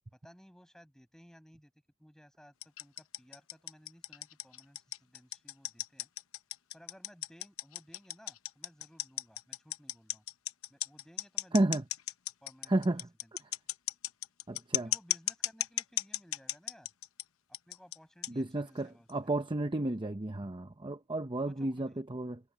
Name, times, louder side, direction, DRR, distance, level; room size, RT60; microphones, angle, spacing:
voice 1, 0.1-1.7 2.0-6.1 6.7-10.2 10.7-11.8 12.4-13.3 14.7-16.9 17.7-19.1 21.4-22.0, equal, 5° left, 6.7 m, -59 dB
sound 1, 2.6-17.2 17.5-18.0 18.2-18.3 19.1-19.2, left 13 dB, 70° left, 0.9 m, -35 dB
voice 2, 11.5-11.8 12.7-13.1 14.5-14.9 18.3-22.4, right 2 dB, 20° right, 0.8 m, -32 dB
head